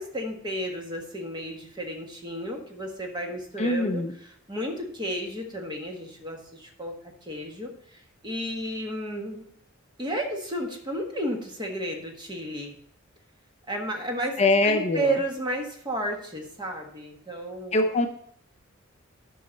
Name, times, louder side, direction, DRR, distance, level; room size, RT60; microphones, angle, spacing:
voice 1, 0.0-6.9 7.2-9.4 10.0-12.7 13.7-14.4 14.6-17.8, right 1 dB, 20° right, 1 dB, 1.5 m, -32 dB
voice 2, 3.6-4.1 14.4-15.1 17.7-18.1, left 2 dB, 35° left, 6 dB, 0.5 m, -23 dB
12.0 x 5.5 x 4.0 m, 0.65 s
head